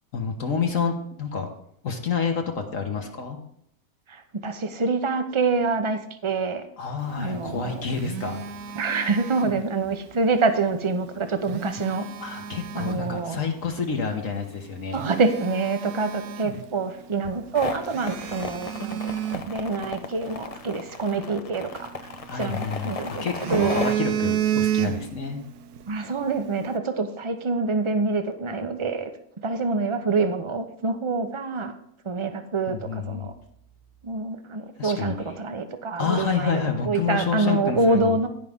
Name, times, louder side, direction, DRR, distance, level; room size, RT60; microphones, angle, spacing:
voice 1, 0.1-1.5 1.8-3.4 6.8-8.7 12.2-15.0 22.3-25.4 32.7-33.3 34.8-35.1 36.0-38.2, left 5 dB, 60° left, 3 dB, 1.6 m, -29 dB
voice 2, 4.1-6.6 7.2-7.9 8.8-12.1 12.7-13.4 14.9-21.9 22.4-23.8 25.9-29.1 29.4-31.7 32.0-33.3 34.0-38.3, right 3 dB, 30° right, 8 dB, 0.6 m, -26 dB
Telephone, 7.4-10.0 11.3-13.2 13.8-13.9 14.5-14.6 14.9-17.0 17.3-17.4 17.9-20.3 21.8-22.8 23.2-25.3 25.6-25.8, right 9 dB, 80° right, 1.1 m, -30 dB
sound 1, 17.6-23.9, left 5 dB, 45° left, 0.5 m, -34 dB
16.0 x 5.4 x 3.6 m, 0.71 s
omnidirectional pair, 1.6 m